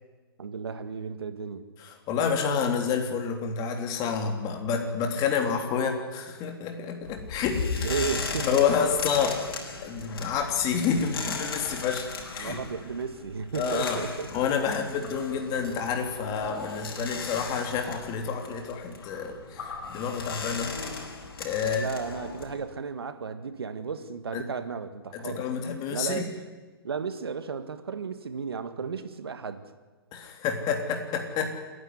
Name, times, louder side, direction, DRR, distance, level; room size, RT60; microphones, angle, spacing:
voice 1, 0.4-1.6 7.8-8.6 12.4-14.3 21.6-25.5 25.9-26.2 26.8-29.7, right 5 dB, 80° right, 10 dB, 1.9 m, -34 dB
voice 2, 1.8-8.0 8.4-9.4 9.8-12.6 13.5-14.0 14.3-20.7 21.4-21.9 24.3-24.4 25.1-26.3 30.1-31.6, left 6 dB, 30° left, 3 dB, 3.3 m, -29 dB
sound 1, 7.0-22.5, left 4 dB, 70° left, 5.6 m, -37 dB
28.5 x 11.0 x 9.7 m, 1.3 s
hypercardioid pair, 130°, 13 cm